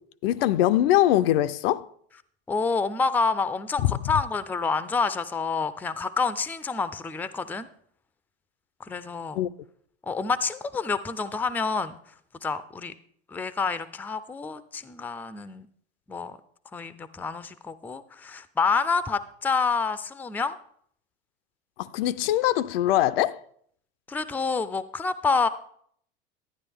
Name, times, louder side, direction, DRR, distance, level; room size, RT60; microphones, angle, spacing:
voice 1, 0.2-1.9 3.8-4.0 9.3-9.5 21.8-23.4, left 13 dB, 70° left, 0.5 m, -22 dB
voice 2, 2.5-7.7 8.8-9.4 10.1-12.0 12.4-12.9 13.3-15.7 16.1-16.4 16.7-20.6 24.1-25.5, left 4 dB, 5° left, 0.4 m, -28 dB
11.0 x 9.6 x 3.5 m
hypercardioid pair, 95°, 31 cm